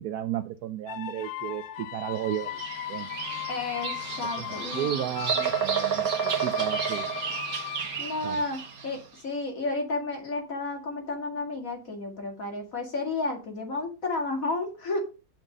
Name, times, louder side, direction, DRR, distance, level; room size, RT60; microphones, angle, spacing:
voice 1, 0.0-2.6 2.9-3.1 4.4-7.1 8.2-8.4, right 11 dB, 70° right, 11 dB, 1.0 m, -33 dB
sound 1, 0.9-8.8, left 12 dB, 75° left, 1.3 m, -38 dB
Bird vocalization bird call bird song, 2.3-9.0, right 7 dB, 50° right, 1.7 m, -31 dB
voice 2, 3.5-4.9 8.0-15.0, left 2 dB, 45° left, 2 dB, 2.8 m, -32 dB
8.9 x 5.8 x 5.3 m, 0.31 s
omnidirectional pair, 2.1 m